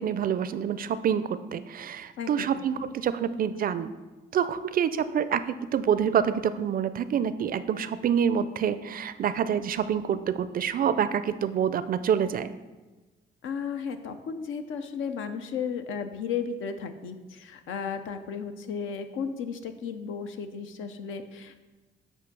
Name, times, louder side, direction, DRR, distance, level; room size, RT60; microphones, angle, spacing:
voice 1, 0.0-3.9 4.3-12.5, right 8 dB, 45° right, 13 dB, 0.4 m, -27 dB
voice 2, 13.4-21.6, left 6 dB, 80° left, 8 dB, 0.6 m, -34 dB
8.1 x 2.7 x 6.0 m, 1.2 s
cardioid pair, 90°, 20 cm